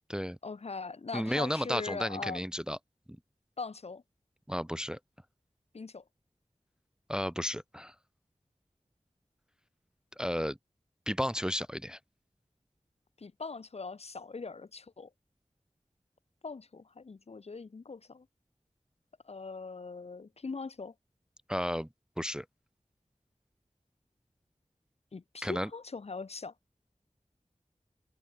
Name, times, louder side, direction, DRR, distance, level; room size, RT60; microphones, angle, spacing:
voice 1, 0.4-2.4 3.6-4.0 5.7-6.0 13.2-15.1 16.4-18.3 19.2-20.9 25.1-26.5, left 4 dB, 55° left, 0.5 m, -41 dB
voice 2, 1.1-2.8 4.5-5.0 7.1-7.9 10.2-10.6 11.1-12.0 21.5-21.9 22.2-22.5 25.4-25.7, equal, 5° right, 0.4 m, -33 dB
open air
wide cardioid pair, 50°, 13 cm